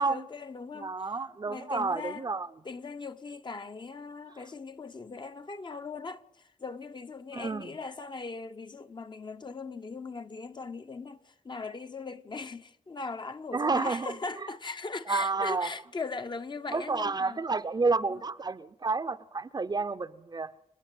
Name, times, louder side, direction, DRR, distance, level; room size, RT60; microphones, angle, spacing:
voice 1, 0.0-1.1 1.4-2.3 2.6-17.4 18.1-18.2, left 4 dB, 40° left, 0.9 m, -39 dB
voice 2, 0.8-2.5 7.3-7.7 13.5-14.1 15.1-15.7 16.7-20.5, right 4 dB, 35° right, 0.6 m, -30 dB
28.5 x 10.0 x 9.2 m
wide cardioid pair, 125°, 12 cm